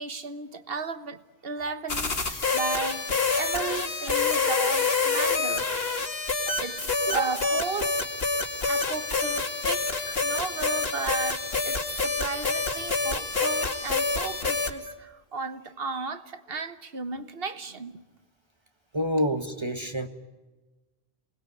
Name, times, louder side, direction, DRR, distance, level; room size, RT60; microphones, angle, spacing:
voice 1, 0.0-3.1 3.4-5.9 6.6-8.1 8.7-18.0, right 4 dB, 70° right, 1.6 m, -34 dB
Stream, 1.7-1.8 2.9-3.0 4.1-4.2 5.3-5.4 6.5-6.6 7.7-7.8 8.9-9.0 10.1-10.2 11.3-11.4 12.5-12.6 13.7-13.8 14.9-15.0, left 5 dB, 50° left, 2.1 m, -43 dB
sound 1, 1.9-14.7, left 4 dB, 75° left, 2.6 m, -27 dB
voice 2, 18.9-20.1, equal, 25° right, 1.6 m, -27 dB
28.5 x 20.5 x 9.3 m
omnidirectional pair, 1.0 m